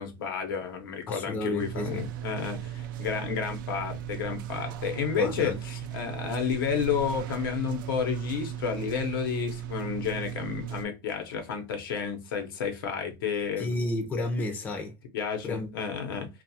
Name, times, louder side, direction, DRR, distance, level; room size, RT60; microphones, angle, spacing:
voice 1, 0.0-13.8 15.1-16.3, left 6 dB, 90° left, 0.9 m, -31 dB
voice 2, 1.1-2.0 5.2-5.6 13.6-14.9 15.4-15.8, left 2 dB, 15° left, 0.4 m, -32 dB
sound 1, 1.6-10.9, right 11 dB, 70° right, 0.4 m, -37 dB
2.3 x 2.3 x 2.7 m
supercardioid pair, 160°, 11 cm